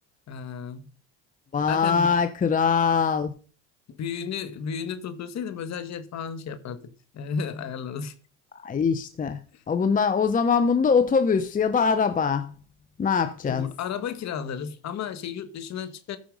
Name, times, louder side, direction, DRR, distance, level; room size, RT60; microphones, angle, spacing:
voice 1, 0.3-0.9 1.7-2.1 3.9-6.8 7.1-8.1 9.5-9.6 13.4-16.2, left 7 dB, 50° left, 1.6 m, -33 dB
voice 2, 1.5-3.3 8.6-9.4 9.7-12.5 13.0-13.7, left 5 dB, 25° left, 0.7 m, -22 dB
14.5 x 5.1 x 5.3 m
supercardioid pair, 90°, 36 cm